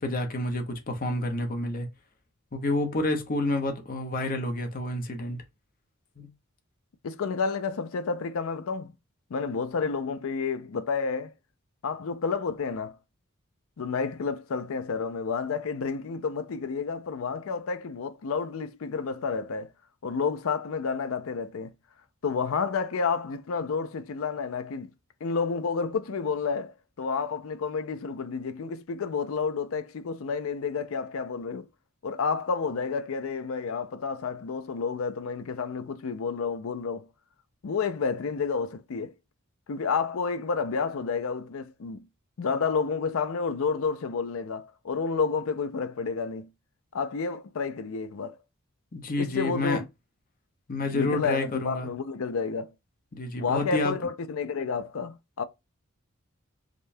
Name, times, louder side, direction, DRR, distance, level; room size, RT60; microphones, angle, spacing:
voice 1, 0.0-1.9 2.5-5.4 6.2-6.3 48.9-49.8 50.7-51.9 53.1-53.9, left 2 dB, 45° left, 0.8 m, -29 dB
voice 2, 7.0-8.9 9.3-11.3 11.8-13.0 13.8-19.7 20.0-21.7 22.2-24.9 25.2-31.7 32.0-37.1 37.6-39.1 39.7-42.0 42.4-46.5 46.9-48.4 49.2-49.8 50.9-52.7 53.4-55.4, left 5 dB, 75° left, 0.5 m, -30 dB
5.0 x 2.2 x 2.6 m
head